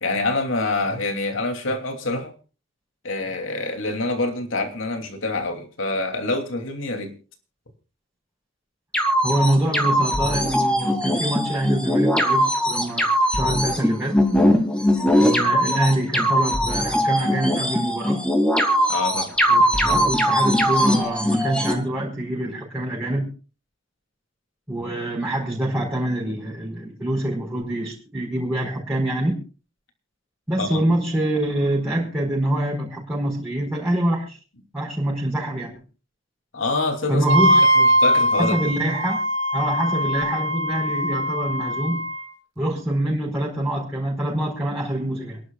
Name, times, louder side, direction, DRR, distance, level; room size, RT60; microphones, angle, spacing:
voice 1, 0.0-2.3 3.0-7.1 15.6-15.7 18.9-19.3 30.6-30.8 36.5-37.2 37.7-38.7, left 2 dB, 85° left, 2.9 m, -26 dB
sound 1, 8.9-21.7, equal, 5° left, 2.5 m, -20 dB
voice 2, 9.2-14.2 15.2-18.2 19.5-23.3 24.7-29.4 30.5-34.4 34.7-35.7 37.1-37.6 38.4-39.2 39.5-42.0 42.6-45.4, right 1 dB, 10° right, 4.7 m, -25 dB
Wind instrument woodwind instrument, 37.3-42.2, equal, 70° right, 2.1 m, -21 dB
28.0 x 11.5 x 2.4 m
head